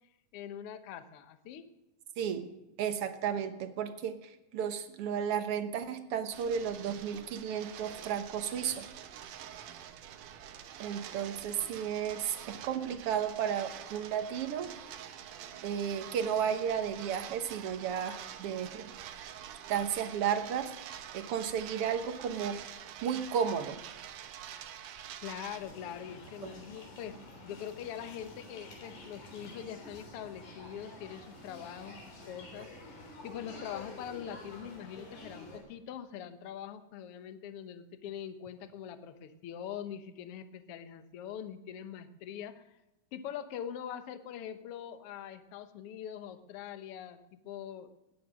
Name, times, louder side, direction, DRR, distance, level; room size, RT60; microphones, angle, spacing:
voice 1, 0.3-1.6 25.2-32.0 32.3-42.6 43.1-48.1, left 9 dB, 65° left, 10 dB, 1.6 m, -43 dB
voice 2, 2.2-2.5 2.8-8.9 10.8-14.7 15.6-18.9 19.7-20.7 21.1-22.6 23.0-23.8 26.4-26.5, right 8 dB, 60° right, 8 dB, 1.8 m, -33 dB
sound 1, 6.3-25.6, right 10 dB, 90° right, 2.5 m, -46 dB
sound 2, 25.5-35.6, left 1 dB, 85° left, 5.1 m, -49 dB
19.5 x 9.4 x 6.2 m, 1.0 s
omnidirectional pair, 3.4 m